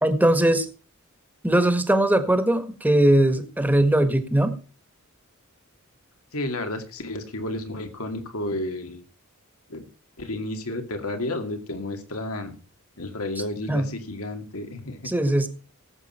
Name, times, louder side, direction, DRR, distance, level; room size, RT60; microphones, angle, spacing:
voice 1, 0.0-0.7 1.4-4.6 13.7-13.9 15.0-15.5, right 1 dB, 10° right, 8 dB, 1.6 m, -20 dB
voice 2, 6.3-9.0 9.7-9.9 10.2-12.5 13.0-15.1, left 1 dB, 90° left, 6 dB, 2.3 m, -31 dB
18.0 x 7.9 x 4.4 m, 0.37 s
head